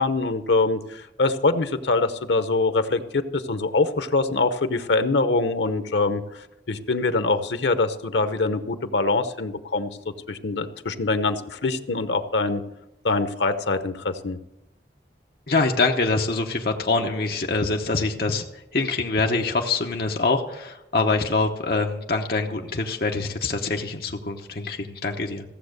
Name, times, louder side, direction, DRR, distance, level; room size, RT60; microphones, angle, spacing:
voice 1, 0.0-9.9 10.3-12.6 13.0-14.4, left 3 dB, 85° left, 11 dB, 0.8 m, -24 dB
voice 2, 15.5-18.5 18.7-25.4, left 3 dB, 55° left, 2 dB, 1.0 m, -24 dB
15.5 x 7.3 x 6.6 m, 0.92 s
head